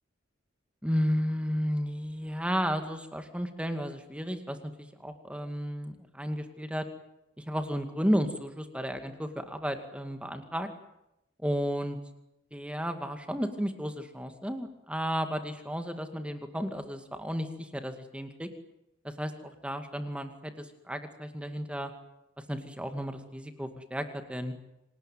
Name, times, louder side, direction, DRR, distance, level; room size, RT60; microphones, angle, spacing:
voice 1, 0.8-6.9 7.4-10.7 11.4-12.0 12.5-18.5 19.0-21.9 22.5-24.5, equal, 5° right, 7 dB, 2.3 m, -33 dB
27.0 x 19.0 x 9.3 m, 0.87 s
head